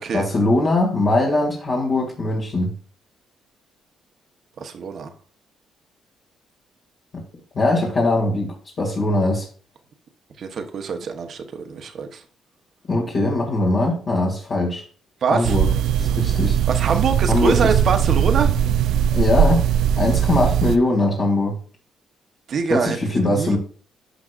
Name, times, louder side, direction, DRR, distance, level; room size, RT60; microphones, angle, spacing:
voice 1, 0.1-2.7 7.5-9.5 12.9-14.8 15.3-15.7 15.9-16.6 17.3-17.7 19.1-19.7 20.0-21.6 22.7-23.6, left 2 dB, 50° left, 2.2 m, -21 dB
voice 2, 4.6-5.1 10.4-12.2 15.2-15.6 16.7-18.5 22.5-23.0 23.3-23.6, right 6 dB, 60° right, 1.0 m, -24 dB
sound 1, 15.4-20.8, right 9 dB, 85° right, 0.5 m, -19 dB
11.0 x 5.2 x 2.5 m
cardioid pair, 90°, 0 cm